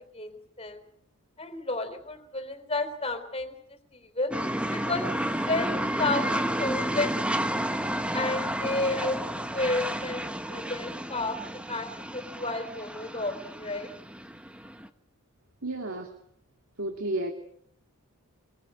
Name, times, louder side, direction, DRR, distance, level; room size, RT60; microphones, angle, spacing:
voice 1, 0.1-0.8 1.4-3.5 3.9-4.3 4.7-5.0 5.4-7.7 8.1-9.2 9.5-10.2 10.5-11.9 12.1-13.9, left 2 dB, 25° left, 8 dB, 3.9 m, -31 dB
sound 1, 4.3-14.9, right 1 dB, 5° right, 1.3 m, -31 dB
voice 2, 15.6-16.1 16.8-17.3, right 2 dB, 65° right, 3 dB, 2.9 m, -31 dB
25.5 x 22.0 x 8.1 m, 0.68 s
head